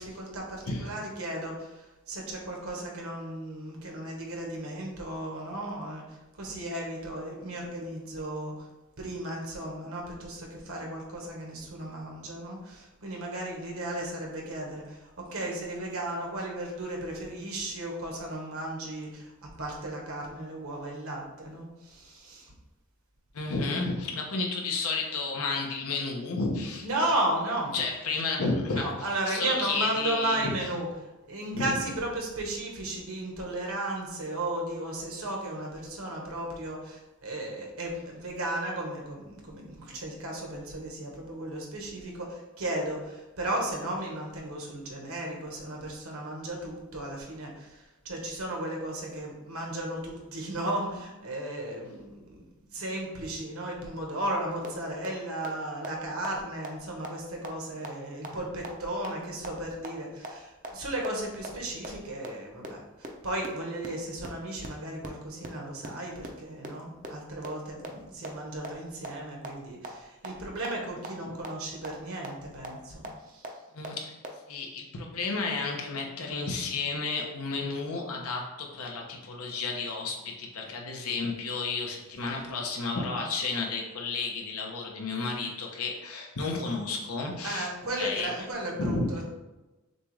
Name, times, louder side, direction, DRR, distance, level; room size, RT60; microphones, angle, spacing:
voice 1, 0.0-6.0 6.4-8.5 9.0-19.3 19.6-22.5 26.8-27.7 28.7-30.9 31.3-52.4 52.7-73.5 87.4-89.2, right 1 dB, 75° right, -1 dB, 1.2 m, -35 dB
voice 2, 23.3-26.8 27.7-28.9 29.3-30.5 31.5-31.8 71.3-71.4 73.7-74.2 74.5-87.7 88.0-88.3 88.8-89.1, left 3 dB, 80° left, 1 dB, 0.9 m, -32 dB
sound 1, 54.6-54.7 55.0-55.1 55.4-55.5 55.8-55.9 56.2-56.3 56.6-56.7 57.0-57.1 57.4-57.5 57.8-57.9 58.2-58.3 58.6-58.7 59.0-59.1 59.4-59.5 59.8-59.9 60.2-60.3 60.6-60.7 61.0-61.1 61.4-61.5 61.8-61.9 62.2-62.3 62.6-62.7 63.0-63.1 63.4-63.5 63.8-63.9 64.2-64.3 64.6-64.7 65.0-65.1 65.4-65.5 65.8-65.9 66.2-66.3 66.6-66.7 67.0-67.1 67.4-67.5 67.8-67.9 68.2-68.3 68.6-68.7 69.0-69.1 69.4-69.5 69.8-69.9 70.2-70.3 70.6-70.7 71.0-71.1 71.4-71.5 71.8-71.9 72.2-72.3 72.6-72.7 73.0-73.1 73.4-73.5 73.8-73.9 74.2-74.3, right 3 dB, 35° right, 0.5 m, -37 dB
6.6 x 2.4 x 3.2 m, 1.1 s
head